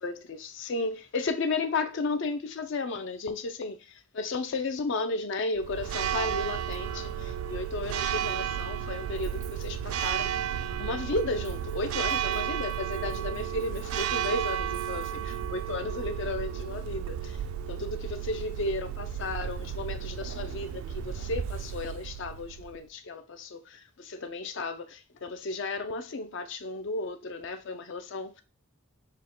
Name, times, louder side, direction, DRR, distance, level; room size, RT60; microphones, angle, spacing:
voice 1, 0.0-10.3 10.8-17.4 17.7-28.4, left 3 dB, 55° left, 0.4 m, -34 dB
Church bell, 5.6-22.8, right 9 dB, 75° right, 0.3 m, -33 dB
6.5 x 2.2 x 3.7 m
head